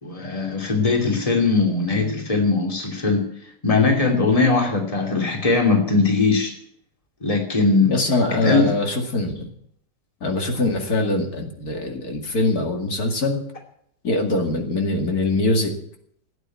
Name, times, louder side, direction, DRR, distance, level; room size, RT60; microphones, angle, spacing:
voice 1, 0.0-3.2 3.6-6.5 7.2-8.0 8.3-8.7, left 3 dB, 20° left, 2 dB, 2.8 m, -20 dB
voice 2, 7.9-9.5 10.2-13.4 14.0-15.7, left 2 dB, 65° left, 3 dB, 2.8 m, -23 dB
16.5 x 9.3 x 9.2 m, 0.68 s
omnidirectional pair, 1.7 m